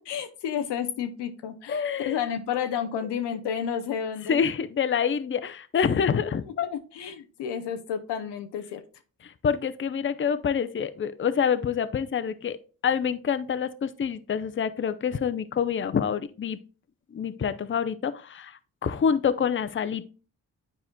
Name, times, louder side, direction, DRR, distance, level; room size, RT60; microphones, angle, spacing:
voice 1, 0.1-4.4 6.1-8.8, left 8 dB, 80° left, 8 dB, 0.7 m, -31 dB
voice 2, 1.7-2.2 4.3-6.7 9.2-12.6 12.8-16.6 17.1-20.0, left 7 dB, 30° left, 13 dB, 0.6 m, -27 dB
9.8 x 4.3 x 2.2 m, 0.36 s
supercardioid pair, 40°, 41 cm